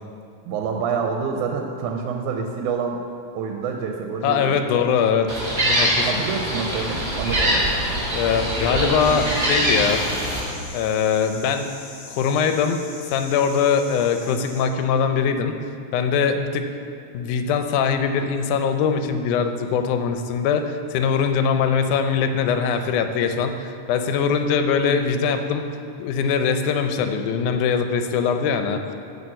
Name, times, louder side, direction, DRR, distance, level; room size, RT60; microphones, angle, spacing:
voice 1, 0.5-3.0 3.4-4.6 6.0-7.7, right 5 dB, 85° right, 3 dB, 2.0 m, -27 dB
voice 2, 4.2-5.3 5.6-6.2 8.1-10.0 10.7-11.7 12.1-12.8 13.1-15.6 15.9-16.7 17.1-25.7 26.0-28.8, left 6 dB, 85° left, 7 dB, 2.1 m, -22 dB
Gull seagull, 5.3-10.4, right 1 dB, 25° right, 1.0 m, -23 dB
sound 1, 9.0-14.6, left 2 dB, 60° left, 2.6 m, -41 dB
9.9 x 4.1 x 7.6 m, 2.4 s
omnidirectional pair, 3.5 m